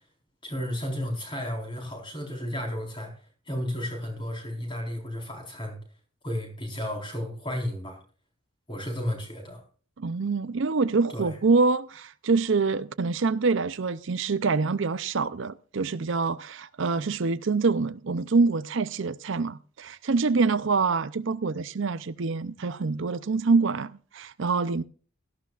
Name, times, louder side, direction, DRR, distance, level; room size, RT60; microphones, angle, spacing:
voice 1, 0.4-3.1 3.5-5.8 6.2-8.0 8.7-9.6 11.1-11.4, left 1 dB, 25° left, 4.3 m, -33 dB
voice 2, 10.0-24.8, right 4 dB, 60° right, 0.5 m, -25 dB
17.5 x 13.5 x 2.4 m
head